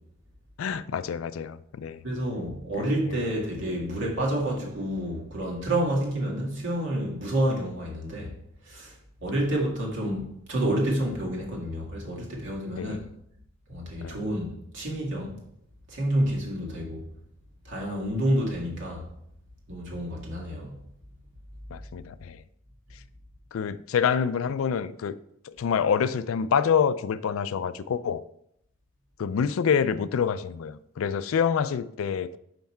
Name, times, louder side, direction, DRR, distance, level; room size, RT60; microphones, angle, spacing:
voice 1, 0.6-2.0 2.8-3.2 12.7-13.0 14.0-14.2 21.7-22.4 23.5-25.2 25.4-28.2 29.2-32.4, left 7 dB, 80° left, 0.4 m, -27 dB
voice 2, 2.0-8.3 8.7-8.9 9.2-13.0 13.7-14.5 14.7-15.4 15.9-17.0 17.7-19.0 19.7-20.8, right 1 dB, 65° right, 2.0 m, -29 dB
5.7 x 5.3 x 4.4 m
head